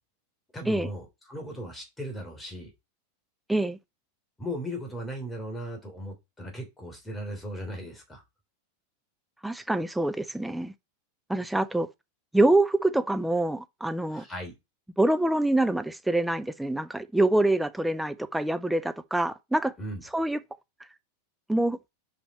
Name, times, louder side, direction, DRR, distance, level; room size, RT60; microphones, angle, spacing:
voice 1, 0.5-2.7 4.4-8.2 14.1-14.5 19.8-20.0, equal, 10° left, 3.4 m, -37 dB
voice 2, 9.4-10.7 11.3-11.9 12.3-14.2 15.0-19.7 20.1-20.4 21.5-21.8, right 2 dB, 5° right, 0.7 m, -25 dB
7.0 x 5.1 x 4.3 m
figure-of-eight pair, 90°, 0 cm